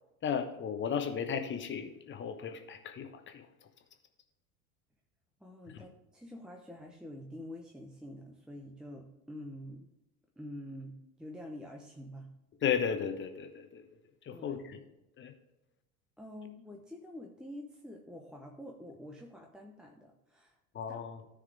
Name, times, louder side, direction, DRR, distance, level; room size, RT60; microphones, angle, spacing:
voice 1, 0.2-3.5 5.7-5.8 12.6-13.8 14.2-14.8 15.2-15.3 20.7-21.2, left 7 dB, 25° left, 6 dB, 1.1 m, -35 dB
voice 2, 5.4-9.9 10.4-12.3 14.3-14.7 16.2-20.6 20.9-21.0, left 1 dB, ahead, 1 dB, 0.8 m, -47 dB
14.0 x 4.9 x 3.5 m, 0.97 s
figure-of-eight pair, 80°, 44 cm